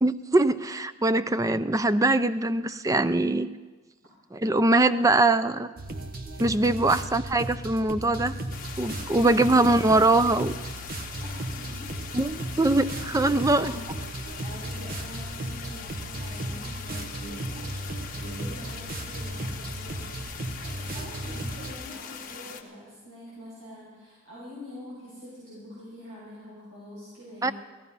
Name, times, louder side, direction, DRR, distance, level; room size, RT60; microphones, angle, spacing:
voice 1, 0.0-3.5 4.3-5.7 6.4-8.3 8.8-10.5 12.1-13.7 27.4-27.5, right 2 dB, 15° right, 14 dB, 0.4 m, -22 dB
sound 1, 5.8-21.7, right 1 dB, 45° right, 1.2 m, -35 dB
voice 2, 6.6-7.1 11.2-12.5 13.5-13.8 14.4-17.7 18.1-27.5, left 1 dB, 70° right, -8 dB, 6.5 m, -45 dB
sound 2, 8.5-22.6, left 6 dB, 40° left, 1.4 m, -41 dB
17.5 x 14.5 x 5.6 m, 1.3 s
head